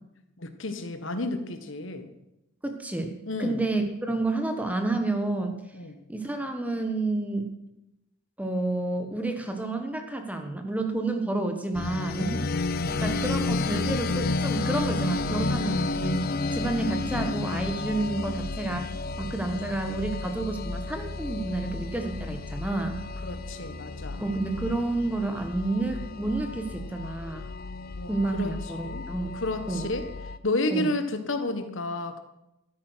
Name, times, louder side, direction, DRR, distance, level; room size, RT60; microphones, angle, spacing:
voice 1, 0.4-2.1 3.3-3.6 5.7-6.0 12.2-12.5 23.2-24.2 28.0-28.5 28.8-30.0 30.4-32.2, left 2 dB, 65° left, 8 dB, 1.4 m, -31 dB
voice 2, 2.6-5.5 6.1-7.5 8.4-12.5 13.0-18.9 19.2-23.0 24.2-27.5 28.1-29.4 29.7-29.9 30.7-30.9, right 2 dB, 5° right, 5 dB, 1.3 m, -30 dB
sound 1, 11.7-30.4, left 3 dB, 45° left, 0.5 m, -31 dB
13.5 x 9.8 x 6.3 m, 0.90 s
head